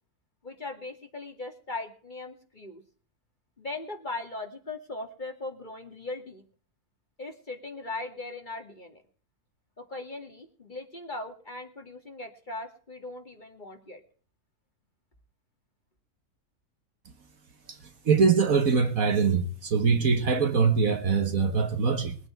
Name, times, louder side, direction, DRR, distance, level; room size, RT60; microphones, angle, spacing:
voice 1, 0.4-2.8 3.6-6.4 7.2-9.0 9.8-14.0, left 2 dB, 30° left, 2.5 m, -39 dB
voice 2, 18.1-22.2, right 5 dB, 55° right, 1.8 m, -23 dB
22.0 x 9.0 x 4.6 m
omnidirectional pair, 1.8 m